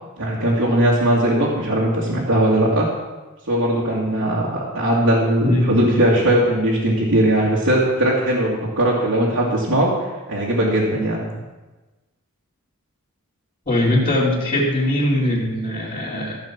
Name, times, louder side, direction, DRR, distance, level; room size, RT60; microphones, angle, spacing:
voice 1, 0.2-2.9 3.5-11.2, right 1 dB, 75° right, -7 dB, 2.4 m, -19 dB
voice 2, 5.4-5.7 13.7-16.4, left 1 dB, 30° left, -9 dB, 2.6 m, -20 dB
15.5 x 5.3 x 7.2 m, 1.2 s
head